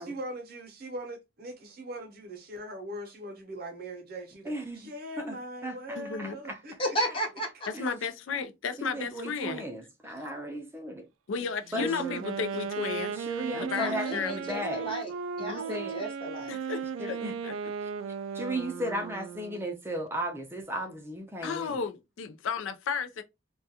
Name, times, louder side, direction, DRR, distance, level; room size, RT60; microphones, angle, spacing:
voice 1, 0.0-6.8, right 1 dB, 50° right, 0.7 m, -41 dB
voice 2, 4.5-4.8 5.2-5.4 5.6-5.8 6.2-6.6 7.7-7.9 8.8-11.0 11.7-12.3 13.1-15.0 15.4-16.0 17.0-17.4 17.8-17.9 18.3-21.8, equal, 10° right, 0.4 m, -35 dB
voice 3, 6.0-6.3 7.7-9.6 11.3-13.2 13.5-14.4 16.5-17.2 17.4-17.5 21.4-23.2, left 6 dB, 75° left, 0.4 m, -33 dB
voice 4, 6.8-7.5 13.8-15.1 15.4-16.5, equal, 25° left, 0.7 m, -33 dB
Wind instrument woodwind instrument, 11.6-19.7, right 6 dB, 85° right, 0.3 m, -36 dB
2.3 x 2.2 x 2.7 m
head